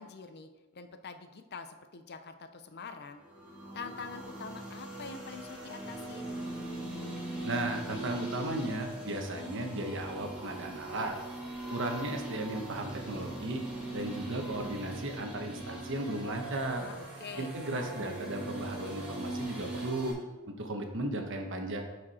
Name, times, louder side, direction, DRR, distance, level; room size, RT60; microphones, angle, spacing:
voice 1, 0.0-3.2 3.7-6.3 16.8-17.5, left 4 dB, 50° left, 8 dB, 0.6 m, -45 dB
sound 1, 3.2-20.1, right 1 dB, 5° right, 2.2 m, -41 dB
voice 2, 7.4-11.2 11.7-13.6 13.9-16.9 17.4-20.2 20.5-21.8, right 1 dB, 60° right, 3 dB, 1.2 m, -35 dB
11.0 x 4.9 x 4.3 m, 1.1 s
head